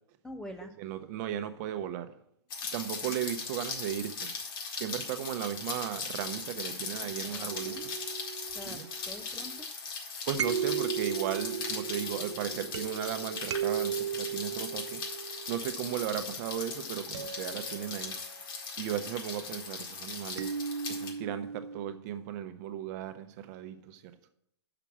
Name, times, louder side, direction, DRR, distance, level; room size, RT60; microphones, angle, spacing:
voice 1, 0.2-0.7 3.0-3.1 7.2-7.8 8.5-8.8 9.1-9.7, equal, 5° left, 0.4 m, -45 dB
voice 2, 0.8-2.1 2.7-4.3 4.8-7.9 8.6-8.9 10.3-15.0 15.5-18.2 18.8-20.6 20.9-24.0, right 10 dB, 40° right, 0.7 m, -36 dB
Rain, 2.5-21.1, left 5 dB, 55° left, 1.8 m, -39 dB
sound 1, 7.5-9.4 10.3-16.2 17.1-18.5 20.4-21.9, right 8 dB, 80° right, 0.5 m, -36 dB
5.9 x 5.9 x 7.0 m
hypercardioid pair, 130°, 14 cm